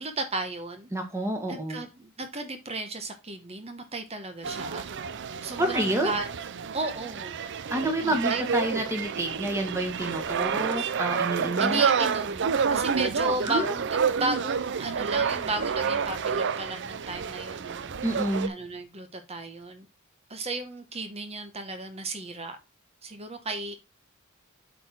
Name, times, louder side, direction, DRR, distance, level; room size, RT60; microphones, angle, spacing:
voice 1, 0.0-0.9 1.5-4.8 5.4-6.3 6.7-7.4 8.0-8.4 11.6-19.9 20.3-22.6 23.0-23.8, right 2 dB, 30° right, 7 dB, 1.1 m, -34 dB
voice 2, 0.9-1.8 5.6-6.1 7.7-11.8 13.4-13.7 18.0-18.5, right 1 dB, 15° right, 4 dB, 1.8 m, -28 dB
sound 1, 4.4-18.5, right 6 dB, 55° right, 0.5 m, -29 dB
8.0 x 4.5 x 4.3 m, 0.27 s
head